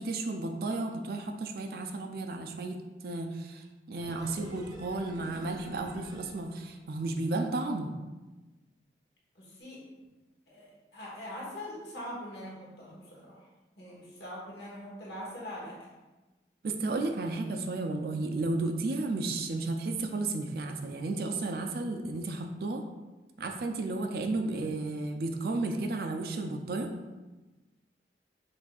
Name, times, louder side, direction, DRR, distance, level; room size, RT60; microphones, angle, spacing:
voice 1, 0.0-7.9 16.6-22.8 23.4-26.9, right 2 dB, 55° right, 4 dB, 0.4 m, -33 dB
sound 1, 4.0-7.1 7.4-7.5, equal, 15° right, 0.7 m, -48 dB
voice 2, 9.3-9.8 10.5-13.5 13.8-15.8, equal, 75° left, -5 dB, 1.2 m, -43 dB
5.8 x 2.6 x 2.3 m, 1.2 s
head